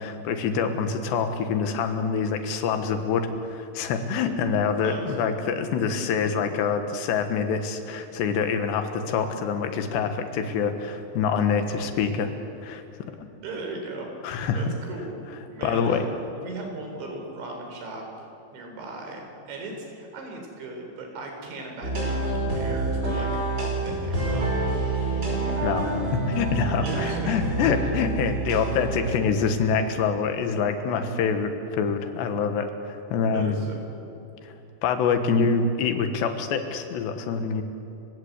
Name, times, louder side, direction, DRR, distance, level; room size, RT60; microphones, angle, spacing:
voice 1, 0.0-12.3 12.6-12.8 13.2-13.3 14.2-14.6 15.6-16.0 25.6-33.6 34.4-34.5 34.8-37.6, left 5 dB, 80° left, 7 dB, 3.6 m, -26 dB
voice 2, 4.8-5.1 13.4-14.1 14.5-15.2 15.5-16.1 16.3-18.1 18.5-23.3 23.6-24.8 26.8-27.4 33.3-34.1, right 2 dB, 85° right, 2 dB, 6.4 m, -37 dB
sound 1, 21.8-29.2, right 2 dB, 25° right, 5.8 m, -27 dB
30.0 x 16.5 x 8.2 m, 2.9 s
omnidirectional pair, 5.1 m